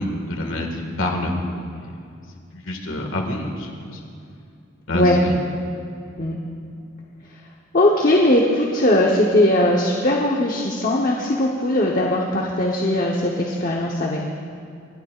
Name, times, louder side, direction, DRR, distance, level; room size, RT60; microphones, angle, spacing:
voice 1, 0.0-1.4 1.8-1.9 2.5-4.0 4.9-5.4, left 1 dB, 85° left, 2 dB, 1.8 m, -27 dB
voice 2, 7.7-14.3, left 1 dB, 45° left, -2 dB, 1.0 m, -19 dB
26.5 x 12.0 x 2.4 m, 2.5 s
head